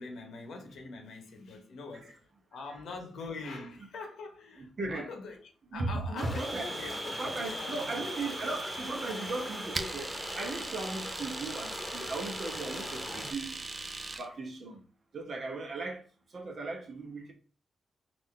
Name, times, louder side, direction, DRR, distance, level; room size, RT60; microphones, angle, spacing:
voice 1, 0.0-8.3, left 3 dB, 75° left, 0.8 m, -44 dB
voice 2, 4.6-5.1 5.7-6.7 7.2-13.6 14.2-14.8 15.1-16.0 16.3-17.3, right 3 dB, 60° right, 0.9 m, -37 dB
sound 1, 6.2-13.3, left 2 dB, 40° left, 0.8 m, -41 dB
Domestic sounds home sounds, 6.3-14.3, right 3 dB, 40° right, 0.5 m, -40 dB
3.6 x 2.6 x 3.2 m
supercardioid pair, 40°, 0 cm